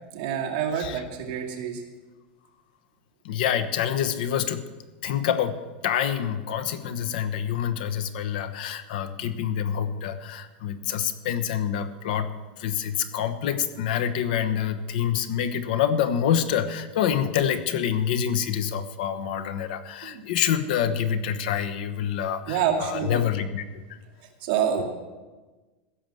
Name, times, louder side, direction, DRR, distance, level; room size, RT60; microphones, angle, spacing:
voice 1, 0.1-1.8 20.0-20.2 22.5-23.2 24.4-24.8, right 8 dB, 50° right, 0 dB, 2.2 m, -27 dB
voice 2, 3.2-4.7 5.0-12.3 12.6-23.8, left 9 dB, 70° left, 11 dB, 1.1 m, -27 dB
16.0 x 6.8 x 7.8 m, 1.3 s
supercardioid pair, 160°, 5 cm